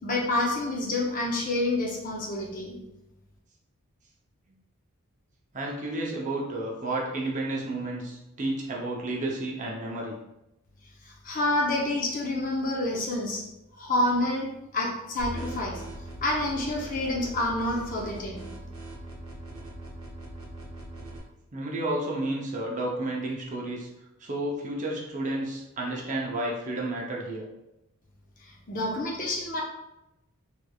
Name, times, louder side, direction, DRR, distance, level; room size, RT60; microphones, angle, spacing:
voice 1, 0.0-2.7 11.0-13.4 13.8-15.8 16.2-18.4 28.4-29.6, left 1 dB, 35° left, -1 dB, 0.6 m, -28 dB
voice 2, 5.5-10.2 21.5-23.9 24.2-27.5, right 1 dB, 35° right, -2 dB, 0.5 m, -31 dB
sound 1, 15.2-21.2, right 1 dB, 75° right, 0.7 m, -40 dB
3.3 x 3.2 x 2.3 m, 0.90 s
head